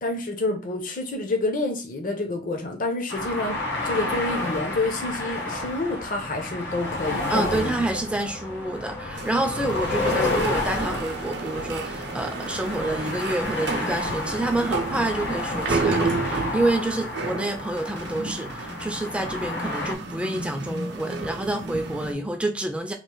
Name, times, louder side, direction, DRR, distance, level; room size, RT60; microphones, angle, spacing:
voice 1, 0.0-7.9, left 2 dB, 50° left, 0.6 m, -28 dB
sound 1, 3.1-19.9, left 2 dB, 80° left, 1.0 m, -30 dB
voice 2, 7.3-22.9, right 1 dB, 5° right, 0.4 m, -28 dB
sound 2, 9.1-22.1, right 3 dB, 65° right, 0.6 m, -32 dB
3.0 x 2.4 x 3.8 m
head